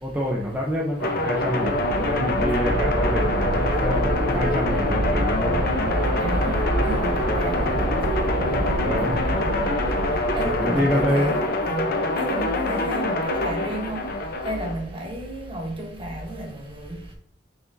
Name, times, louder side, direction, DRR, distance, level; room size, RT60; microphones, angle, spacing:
voice 1, 0.0-5.6 7.7-7.8 8.8-9.2 10.4-11.3, equal, 10° right, 0.7 m, -27 dB
sound 1, 1.0-14.7, left 2 dB, 50° left, 0.8 m, -25 dB
sound 2, 1.4-11.2, right 2 dB, 70° right, 0.6 m, -27 dB
voice 2, 6.2-8.9 9.3-9.7 10.3-11.9 12.2-14.1 14.4-16.9, right 1 dB, 30° right, 1.2 m, -33 dB
6.0 x 5.9 x 2.7 m
head